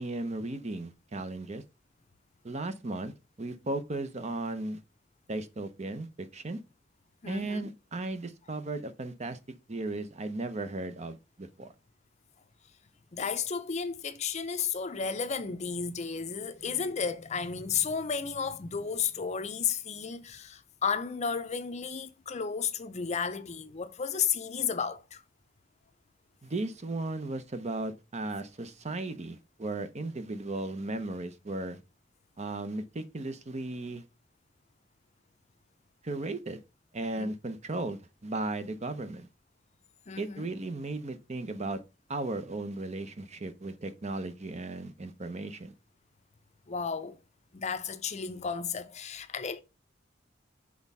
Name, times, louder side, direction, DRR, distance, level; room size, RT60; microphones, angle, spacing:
voice 1, 0.0-1.6 2.4-4.8 5.3-6.6 7.3-11.7 26.4-31.8 32.4-34.0 36.0-36.6 36.9-39.3 40.2-41.8 42.1-45.7, right 2 dB, 35° right, 0.8 m, -36 dB
voice 2, 7.2-7.7 13.1-25.2 37.2-37.3 40.1-40.5 46.7-47.2 47.5-49.6, left 6 dB, 40° left, 0.6 m, -33 dB
6.2 x 3.6 x 5.4 m
head